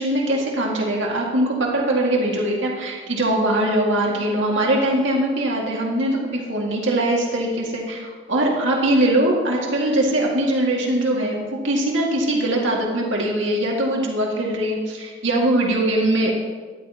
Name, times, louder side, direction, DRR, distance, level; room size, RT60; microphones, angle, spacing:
voice 1, 0.0-16.3, right 1 dB, 85° right, -2 dB, 2.1 m, -21 dB
13.5 x 11.5 x 3.0 m, 1.5 s
head